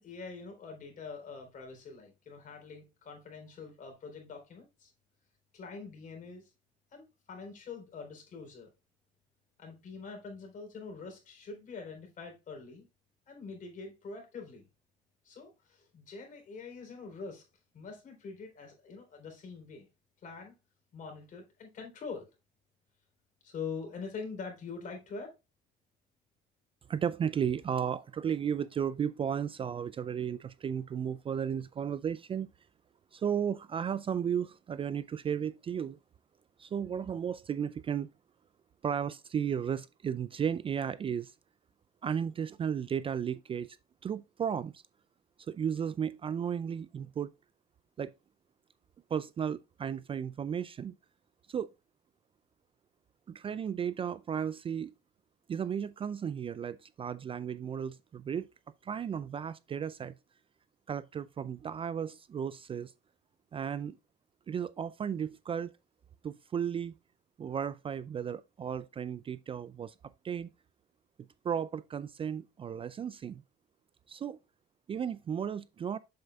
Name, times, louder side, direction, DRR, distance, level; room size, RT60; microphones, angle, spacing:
voice 1, 0.0-4.9 5.5-6.5 6.9-8.7 9.6-12.9 13.3-14.6 15.2-17.4 17.7-19.9 20.2-20.5 20.9-22.3 23.4-25.3, left 4 dB, 50° left, 4.0 m, -44 dB
voice 2, 26.9-32.5 33.1-36.0 36.6-38.1 38.8-41.3 42.0-43.8 44.0-44.8 45.4-47.3 48.0-48.1 49.1-50.9 51.5-51.7 53.3-54.9 55.5-58.5 58.8-60.1 60.9-62.9 63.5-64.0 64.5-65.7 66.2-66.9 67.4-69.9 70.2-70.5 71.4-73.4 74.1-74.4 74.9-76.0, right 8 dB, 30° right, 0.4 m, -34 dB
7.8 x 6.6 x 2.4 m
cardioid pair, 110°, 17 cm